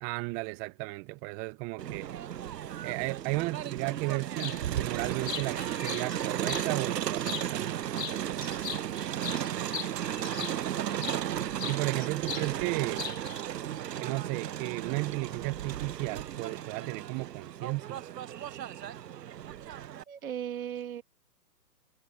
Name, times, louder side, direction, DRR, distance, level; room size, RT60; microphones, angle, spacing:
voice 1, 0.0-2.1 2.8-7.8 10.1-10.2 11.7-13.0 14.0-18.0, right 24 dB, 15° right, 0.9 m, -34 dB
Crowd, 1.8-20.0, right 11 dB, 80° right, 0.6 m, -35 dB
sound 1, 4.4-4.6 5.0-6.7 7.2-7.7 8.0-11.2 11.6-12.5 12.8-13.4, left 7 dB, 75° left, 1.4 m, -39 dB
voice 2, 8.9-9.3 20.1-21.0, right 10 dB, 55° right, 2.3 m, -38 dB
hypercardioid pair, 140°, 49 cm